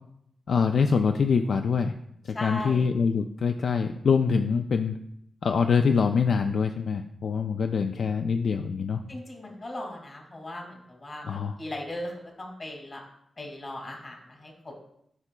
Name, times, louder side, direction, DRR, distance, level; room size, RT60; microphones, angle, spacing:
voice 1, 0.5-1.9 2.4-5.0 5.4-9.0 11.2-11.6, left 5 dB, 75° left, 6 dB, 0.3 m, -24 dB
voice 2, 2.3-2.9 9.1-12.1 12.4-13.0 13.4-14.8, left 1 dB, 45° left, 1 dB, 2.1 m, -38 dB
9.6 x 4.9 x 2.2 m, 0.74 s
cardioid pair, 65°, 0 cm